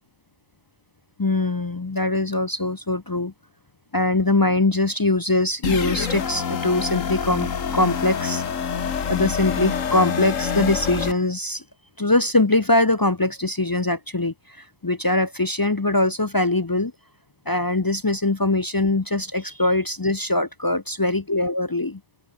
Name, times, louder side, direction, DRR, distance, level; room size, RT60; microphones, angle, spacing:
voice 1, 1.2-3.3 3.9-8.4 9.1-11.6 12.0-16.9 17.5-22.0, left 2 dB, 30° left, 0.4 m, -22 dB
sound 1, 5.6-11.1, left 7 dB, 75° left, 1.8 m, -26 dB
open air
omnidirectional pair, 1.4 m